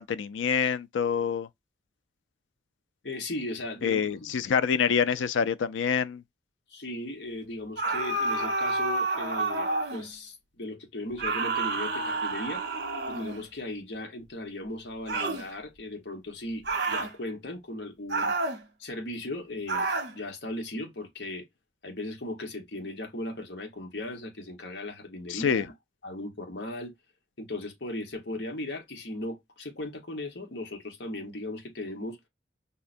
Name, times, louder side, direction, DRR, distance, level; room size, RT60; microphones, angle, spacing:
voice 1, 0.0-1.5 3.8-6.2 25.3-25.7, left 7 dB, 90° left, 0.4 m, -26 dB
voice 2, 3.0-4.3 6.7-12.7 13.1-18.3 18.8-21.5 21.8-25.7 26.0-26.9 27.4-32.2, left 1 dB, 70° left, 1.1 m, -37 dB
sound 1, 7.8-10.1 11.2-13.4 15.1-15.5 16.6-17.1 18.1-18.6 19.7-20.1, right 3 dB, 60° right, 0.8 m, -29 dB
5.4 x 2.1 x 2.5 m
head